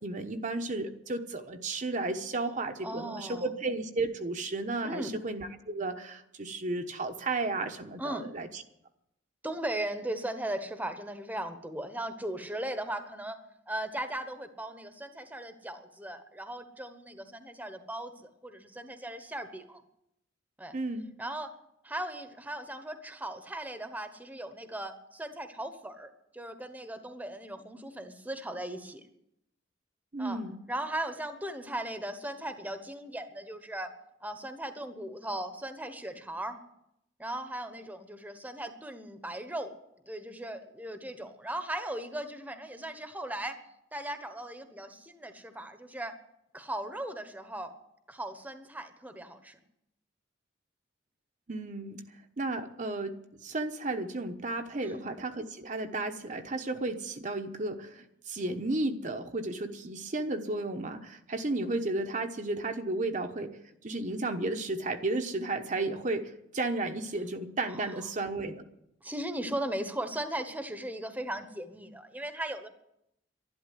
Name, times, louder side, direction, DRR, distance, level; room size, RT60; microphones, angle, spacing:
voice 1, 0.0-8.6 20.7-21.1 30.1-30.6 51.5-52.0 52.4-53.2 53.4-68.6, right 2 dB, 45° right, 5 dB, 1.0 m, -33 dB
voice 2, 2.8-3.5 4.8-5.2 8.0-8.3 9.4-13.4 13.7-19.8 20.6-20.7 21.2-21.5 21.8-29.0 30.2-30.4 30.7-33.9 34.2-36.6 37.2-39.8 40.0-43.6 43.9-46.1 46.5-47.7 48.1-49.6 54.8-55.1 67.7-68.1 69.0-72.7, right 1 dB, 10° right, 8 dB, 1.1 m, -38 dB
12.0 x 11.5 x 9.1 m, 0.80 s
head